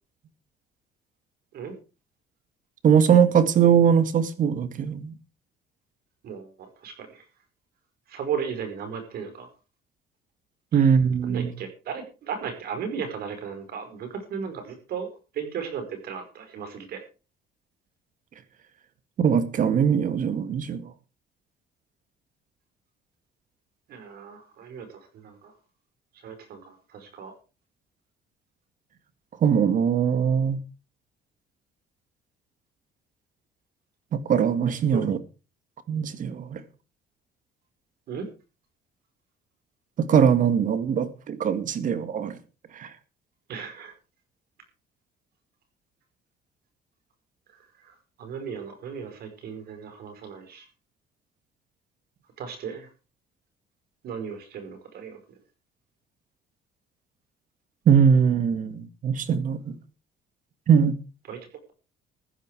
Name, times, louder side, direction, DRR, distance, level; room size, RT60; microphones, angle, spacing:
voice 1, 2.8-5.1 10.7-11.5 19.2-20.9 29.4-30.6 34.1-35.2 35.9-36.6 40.0-42.4 42.7-42.9 57.9-59.8 60.7-61.0, right 7 dB, 50° right, 2.0 m, -21 dB
voice 2, 6.8-7.2 8.1-9.5 10.7-10.9 11.2-15.1 15.3-17.0 23.9-24.9 25.2-25.5 26.2-27.3 34.9-35.1 38.1-38.3 43.5-43.9 48.2-50.6 52.4-52.9 54.0-55.2 61.3-61.4, right 7 dB, 65° right, 5.2 m, -35 dB
15.0 x 11.0 x 4.9 m
cardioid pair, 110°, 17 cm